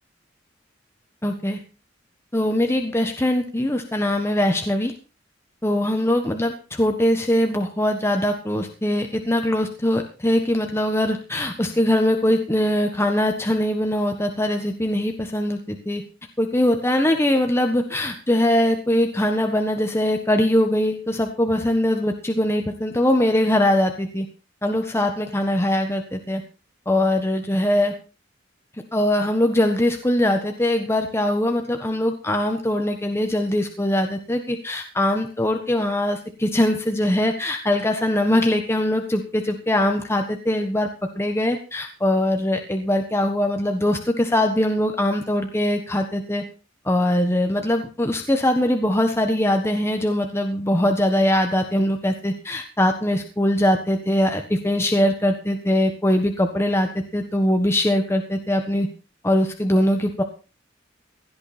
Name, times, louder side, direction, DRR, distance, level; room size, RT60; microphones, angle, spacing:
voice 1, 1.2-1.6 2.3-4.9 5.6-16.0 16.4-24.3 24.6-26.4 26.9-27.9 28.9-40.9 41.2-46.4 46.8-58.9 59.2-60.2, left 1 dB, 15° left, 4 dB, 1.4 m, -22 dB
17.0 x 11.5 x 4.3 m, 0.33 s
head